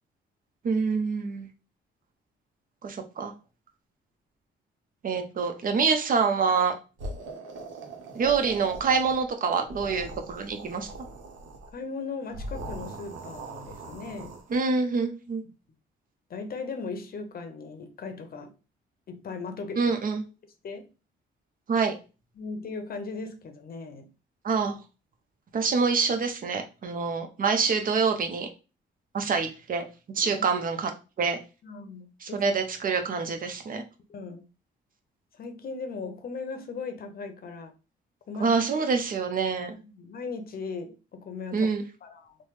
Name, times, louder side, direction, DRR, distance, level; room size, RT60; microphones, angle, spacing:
voice 1, 0.6-1.5 2.8-3.3 5.0-6.7 8.1-10.9 14.5-15.4 19.8-20.2 21.7-21.9 24.4-24.8 25.5-28.5 29.1-29.8 30.1-30.9 31.2-31.4 32.2-33.8 38.4-39.7 41.5-41.8, right 5 dB, 45° right, 0.7 m, -26 dB
sound 1, 7.0-9.3 9.6-11.7 12.3-14.6, right 2 dB, 75° right, 0.8 m, -41 dB
voice 2, 11.7-14.4 16.3-18.5 19.1-19.8 20.6-20.9 22.4-24.1 30.3-30.4 31.6-32.4 33.7-34.4 35.3-37.7 38.3-38.5 39.7-41.7 42.0-42.4, left 4 dB, 50° left, 0.7 m, -38 dB
3.3 x 2.1 x 3.2 m
cardioid pair, 90°, 20 cm